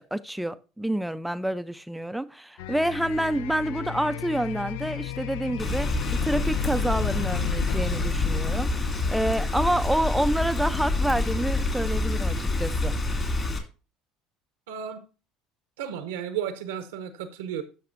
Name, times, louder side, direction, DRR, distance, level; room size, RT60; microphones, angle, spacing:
voice 1, 0.0-12.9, right 1 dB, 5° right, 0.4 m, -28 dB
sound 1, 2.6-10.5, left 12 dB, 75° left, 0.3 m, -34 dB
Rain, 5.6-13.6, left 2 dB, 30° left, 2.3 m, -27 dB
voice 2, 14.7-15.0 15.8-17.6, right 9 dB, 85° right, 0.8 m, -33 dB
12.0 x 5.9 x 2.5 m
hypercardioid pair, 80°, 0 cm